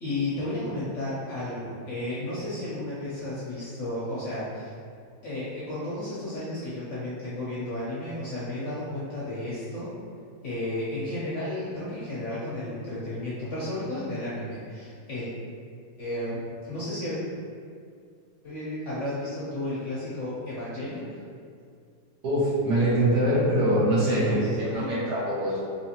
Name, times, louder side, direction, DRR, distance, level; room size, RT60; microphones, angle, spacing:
voice 1, 0.0-4.7 5.2-9.9 10.4-15.3 16.0-16.4 16.7-17.2 18.4-21.1 24.0-25.0, left 1 dB, 55° left, -9 dB, 0.8 m, -33 dB
voice 2, 22.2-24.4 24.7-25.6, right 1 dB, 60° right, -10 dB, 1.7 m, -23 dB
4.0 x 2.9 x 2.8 m, 2.2 s
omnidirectional pair, 1.9 m